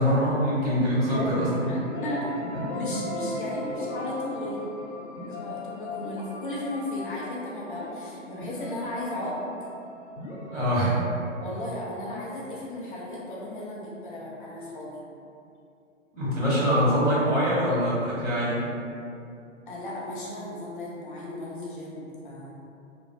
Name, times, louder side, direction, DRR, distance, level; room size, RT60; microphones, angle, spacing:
voice 1, 0.0-1.7 2.9-3.0 10.5-11.0 16.1-18.6, equal, 65° right, -8 dB, 1.5 m, -24 dB
voice 2, 1.1-2.4 2.7-4.7 5.2-9.4 11.4-15.0 19.7-22.5, left 1 dB, 40° left, -5 dB, 0.5 m, -35 dB
sound 1, 1.2-12.9, left 1 dB, 80° left, 0.7 m, -38 dB
3.2 x 2.0 x 2.6 m, 2.5 s
figure-of-eight pair, 125°, 39 cm